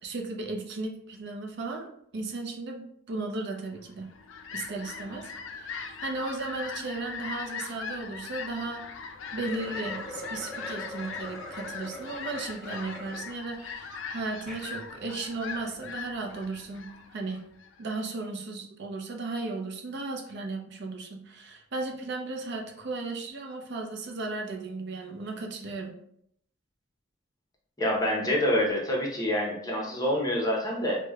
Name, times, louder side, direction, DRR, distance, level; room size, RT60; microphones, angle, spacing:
voice 1, 0.0-1.9 2.1-4.1 4.5-8.8 9.3-17.4 17.8-26.0, right 3 dB, 60° right, 2 dB, 0.5 m, -35 dB
Fowl, 3.9-17.8, left 5 dB, 70° left, 0.4 m, -40 dB
sound 1, 9.4-13.2 13.7-13.8 14.3-14.7, equal, ahead, 1.1 m, -42 dB
voice 2, 27.8-31.0, left 1 dB, 20° left, -2 dB, 0.7 m, -26 dB
4.8 x 2.1 x 2.3 m, 0.70 s
head